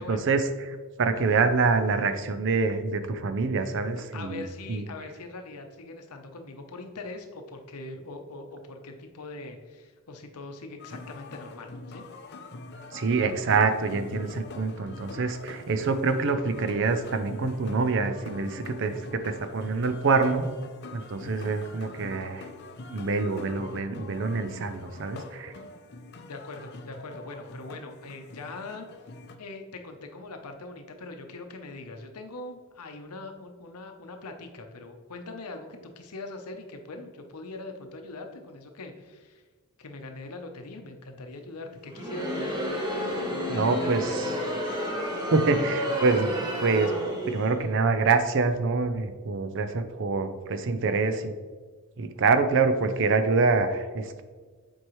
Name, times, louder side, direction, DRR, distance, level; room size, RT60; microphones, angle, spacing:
voice 1, 0.1-4.4 4.7-4.8 12.9-20.5 20.9-22.4 22.9-25.5 43.5-44.2 45.3-46.3 46.6-46.9 47.3-51.3 52.0-54.2, right 4 dB, 55° right, 9 dB, 0.5 m, -26 dB
voice 2, 4.0-12.0 26.2-28.9 29.4-39.4 39.8-42.6 43.3-44.5, left 2 dB, 90° left, 5 dB, 0.8 m, -42 dB
sound 1, 10.8-29.4, left 2 dB, 50° left, 0.5 m, -43 dB
Crowd, 41.9-47.6, equal, 20° right, 1.0 m, -31 dB
7.5 x 4.6 x 3.1 m, 1.5 s
head